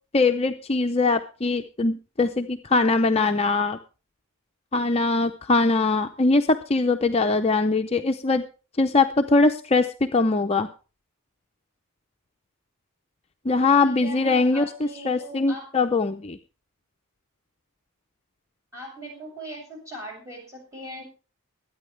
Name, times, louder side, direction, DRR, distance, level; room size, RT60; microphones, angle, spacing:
voice 1, 0.1-3.8 4.7-8.4 8.8-10.7 13.4-16.4, left 3 dB, 25° left, 5 dB, 0.5 m, -22 dB
voice 2, 13.8-15.6 18.7-21.0, right 1 dB, 15° right, -1 dB, 6.9 m, -39 dB
22.5 x 9.2 x 3.3 m, 0.34 s
head